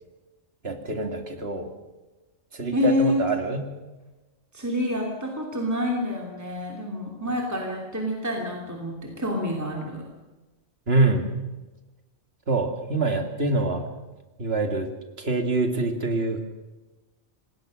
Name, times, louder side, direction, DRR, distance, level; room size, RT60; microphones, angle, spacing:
voice 1, 0.6-1.7 2.5-3.7 10.9-11.3 12.5-13.8 14.4-14.9 15.2-16.5, right 3 dB, 60° right, 5 dB, 2.7 m, -25 dB
voice 2, 2.7-3.2 4.5-10.0, left 1 dB, 15° right, 0 dB, 3.0 m, -27 dB
26.5 x 19.5 x 6.5 m, 1.2 s
omnidirectional pair, 1.2 m